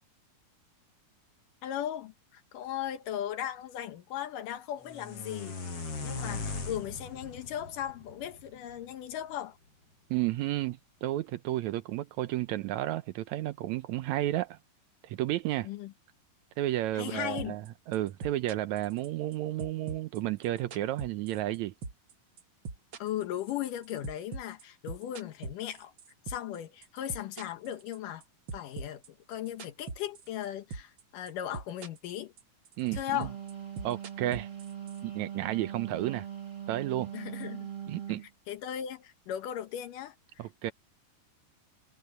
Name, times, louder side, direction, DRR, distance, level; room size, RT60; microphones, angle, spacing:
voice 1, 1.6-5.6 6.0-9.6 15.6-15.9 16.9-17.6 23.0-25.9 26.3-28.2 28.5-29.0 29.3-32.3 32.9-33.3 37.1-37.7 38.5-40.2, left 11 dB, 70° left, 2.5 m, -37 dB
sound 1, 4.8-8.9, left 4 dB, 40° left, 6.4 m, -39 dB
voice 2, 10.1-14.6 15.0-15.7 16.6-21.7 32.8-33.3 33.8-34.5 35.0-36.3 36.7-37.1 37.9-38.2 40.4-40.7, right 15 dB, 80° right, 1.6 m, -32 dB
sound 2, 17.4-17.7 17.9-19.3 19.6-21.6 21.8-22.1 22.4-26.6 26.8-28.2 28.5-30.4 30.7-31.0 31.3-32.1 32.4-35.0, right 4 dB, 45° right, 1.8 m, -41 dB
Wind instrument woodwind instrument, 33.0-38.3, right 9 dB, 30° right, 0.9 m, -41 dB
omnidirectional pair, 4.1 m